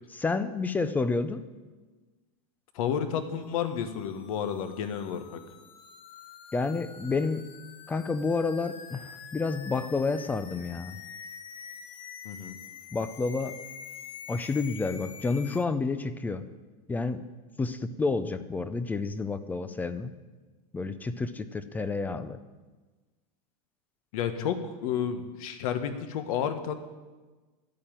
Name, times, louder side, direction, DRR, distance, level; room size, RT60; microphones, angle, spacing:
voice 1, 0.1-1.5 6.5-7.5 7.9-11.0 12.9-13.6 14.3-16.4 16.9-17.2 17.6-20.1 20.7-22.4, left 4 dB, 10° left, 12 dB, 0.4 m, -30 dB
voice 2, 2.7-5.4 12.2-12.6 24.1-26.7, left 8 dB, 65° left, 8 dB, 1.4 m, -31 dB
sound 1, 3.4-15.6, left 7 dB, 25° left, 0.8 m, -46 dB
11.5 x 8.5 x 8.9 m, 1.3 s
supercardioid pair, 155°, 19 cm